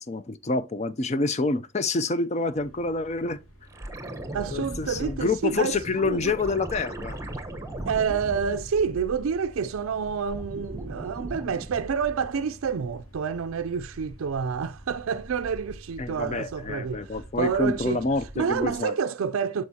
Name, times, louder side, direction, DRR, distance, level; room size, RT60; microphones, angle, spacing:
voice 1, 0.1-3.4 4.5-7.2 16.0-18.9, left 3 dB, 30° left, 0.4 m, -27 dB
sound 1, 2.4-18.8, equal, 85° left, 3.0 m, -48 dB
sound 2, 3.7-9.5 9.9-12.4 14.8-14.9, right 1 dB, 15° right, 0.9 m, -38 dB
voice 2, 4.3-6.3 7.8-18.0 18.4-19.6, right 6 dB, 80° right, 0.4 m, -28 dB
9.3 x 6.3 x 2.7 m
head